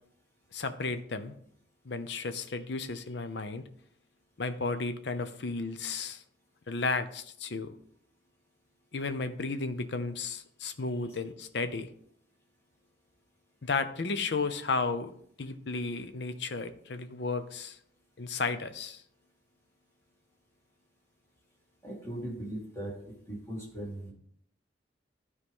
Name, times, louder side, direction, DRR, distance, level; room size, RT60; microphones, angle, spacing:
voice 1, 0.5-1.3 1.8-3.6 4.4-6.2 6.7-7.7 8.9-11.9 13.6-15.1 15.4-17.8 18.2-19.0, left 4 dB, 65° left, 10 dB, 0.6 m, -33 dB
voice 2, 21.8-24.1, right 1 dB, 15° left, -3 dB, 2.4 m, -39 dB
12.5 x 4.8 x 3.6 m, 0.66 s
head